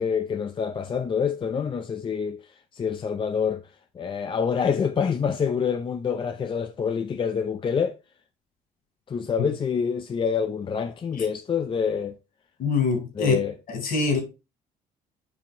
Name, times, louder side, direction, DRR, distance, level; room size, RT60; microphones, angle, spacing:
voice 1, 0.0-2.4 2.7-3.6 4.0-8.0 9.1-12.2 13.2-13.5, left 6 dB, 30° left, 0.5 m, -26 dB
voice 2, 12.6-13.3 13.7-14.2, left 4 dB, 60° left, 4.2 m, -24 dB
7.6 x 5.8 x 3.1 m
cardioid pair, 110°, 17 cm